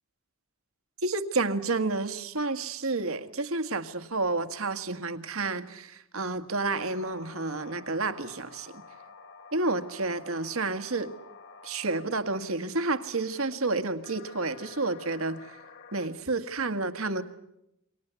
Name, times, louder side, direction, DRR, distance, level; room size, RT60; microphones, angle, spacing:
voice 1, 1.0-8.8 9.5-11.1 11.6-15.6 15.9-17.2, right 3 dB, 70° right, 10 dB, 1.8 m, -30 dB
sound 1, 6.6-16.1, left 4 dB, 60° left, 3.8 m, -50 dB
29.0 x 24.0 x 8.3 m, 0.82 s
head